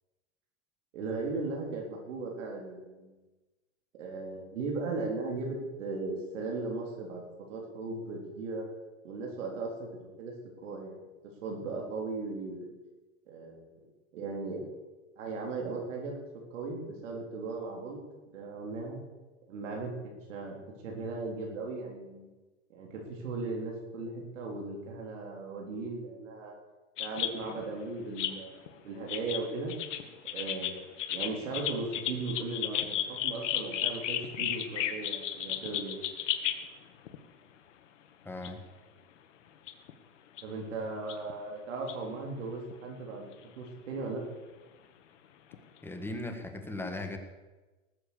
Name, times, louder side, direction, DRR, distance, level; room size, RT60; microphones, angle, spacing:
voice 1, 0.9-3.2 4.0-7.2 7.5-8.7 9.0-9.9 10.2-10.3 10.6-11.0 11.4-12.7 13.3-13.7 14.1-14.6 15.2-16.1 16.5-18.0 18.3-19.0 19.5-19.9 20.3-20.6 20.8-22.3 22.7-26.5 27.0-29.7 30.3-30.8 31.1-36.0 40.4-44.2, right 3 dB, 80° right, 0 dB, 4.0 m, -37 dB
sound 1, 27.0-27.7 28.2-28.7 29.1-36.6 37.1-37.2 38.4-38.5 39.7-39.9 40.4-40.5 41.1-41.3 41.9-42.0 42.7-42.8 44.1-44.2 45.5-45.6, left 11 dB, 75° left, 1.6 m, -34 dB
voice 2, 38.2-38.6 45.8-47.2, left 2 dB, 5° left, 6 dB, 1.7 m, -38 dB
18.5 x 8.0 x 7.0 m, 1.2 s
supercardioid pair, 130°, 37 cm